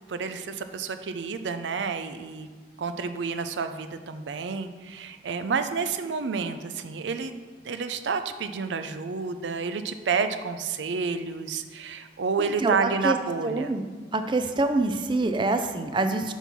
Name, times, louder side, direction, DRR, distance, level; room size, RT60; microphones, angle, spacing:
voice 1, 0.1-2.5 2.8-7.3 7.6-13.7, right 5 dB, 85° right, 9 dB, 0.5 m, -30 dB
voice 2, 12.4-13.2 13.4-13.8 14.1-16.3, right 2 dB, 25° right, 8 dB, 0.4 m, -26 dB
5.3 x 4.5 x 5.9 m, 1.5 s
head